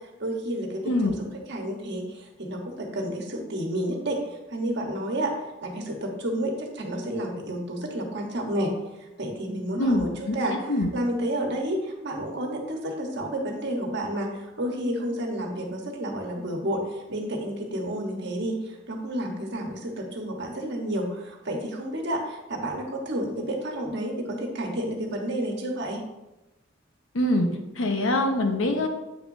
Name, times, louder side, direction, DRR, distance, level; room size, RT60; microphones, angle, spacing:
voice 1, 0.2-1.1 1.5-4.2 4.5-5.3 5.6-8.7 9.2-10.7 10.9-26.0, right 1 dB, 60° right, 2 dB, 1.3 m, -30 dB
voice 2, 0.8-1.2 9.8-10.9 27.1-27.5 27.8-28.9, left 1 dB, 75° left, 5 dB, 0.9 m, -24 dB
8.3 x 6.1 x 2.7 m, 1.0 s
head